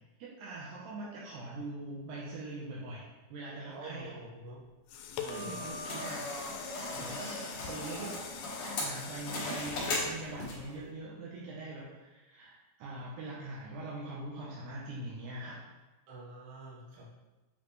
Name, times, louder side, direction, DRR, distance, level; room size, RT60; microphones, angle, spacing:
voice 1, 0.2-4.1 5.2-6.3 7.0-8.2 8.8-15.6, right 2 dB, 75° right, -6 dB, 2.9 m, -42 dB
voice 2, 3.7-4.6 5.2-5.6 6.8-7.1 16.1-17.1, right 2 dB, 60° right, -5 dB, 2.7 m, -47 dB
sound 1, 4.6-10.9 11.4-11.5, left 7 dB, 90° left, 2.9 m, -44 dB
sound 2, 5.3-10.8, left 2 dB, 60° left, 2.5 m, -38 dB
8.3 x 4.1 x 3.2 m, 1.1 s
omnidirectional pair, 4.9 m